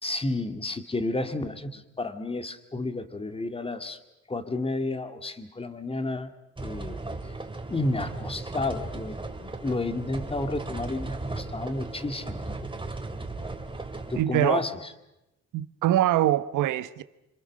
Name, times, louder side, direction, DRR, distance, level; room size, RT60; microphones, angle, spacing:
voice 1, 0.0-4.0 4.3-6.3 6.6-7.0 7.7-9.2 9.4-12.4 14.1-14.7, left 2 dB, 20° left, 2.1 m, -31 dB
sound 1, 6.6-14.2, right 2 dB, 15° right, 2.7 m, -36 dB
voice 2, 14.1-14.6 15.5-17.0, right 13 dB, 85° right, 1.1 m, -23 dB
27.5 x 26.0 x 6.5 m
cardioid pair, 90°, 30 cm